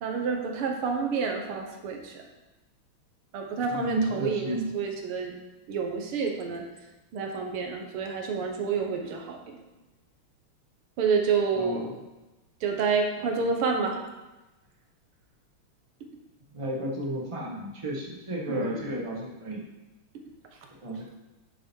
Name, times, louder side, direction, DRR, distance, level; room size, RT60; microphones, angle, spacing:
voice 1, 0.0-2.2 3.3-5.3 5.7-6.6 7.1-9.6 11.0-12.0 12.6-14.0 18.5-19.0, right 5 dB, 85° right, 2 dB, 2.1 m, -29 dB
voice 2, 3.7-4.7 11.5-11.9 16.5-19.6 20.7-21.2, right 1 dB, 15° right, -2 dB, 1.4 m, -32 dB
8.9 x 7.4 x 4.6 m, 1.1 s
omnidirectional pair, 2.3 m